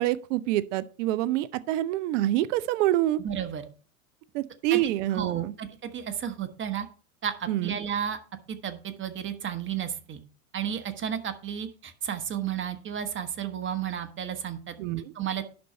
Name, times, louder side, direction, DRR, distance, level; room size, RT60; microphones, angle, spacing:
voice 1, 0.0-3.2 4.3-5.5 7.5-7.7 14.8-15.1, right 14 dB, 55° right, 0.6 m, -26 dB
voice 2, 3.2-3.6 4.7-6.9 7.2-8.2 8.5-10.2 10.5-14.7 15.1-15.4, right 8 dB, 25° right, 1.4 m, -33 dB
11.0 x 4.3 x 5.6 m
hypercardioid pair, 95°, 43 cm